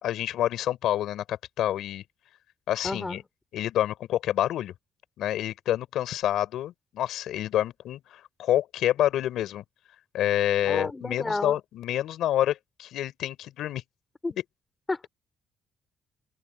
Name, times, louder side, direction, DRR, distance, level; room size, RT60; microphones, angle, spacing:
voice 1, 0.0-2.0 2.7-3.2 3.5-4.7 5.2-9.6 10.1-13.8, left 12 dB, 80° left, 4.5 m, -28 dB
voice 2, 2.8-3.2 10.6-11.6 14.2-14.4 14.9-15.1, left 3 dB, 20° left, 5.6 m, -31 dB
cardioid pair, 105°, 0 cm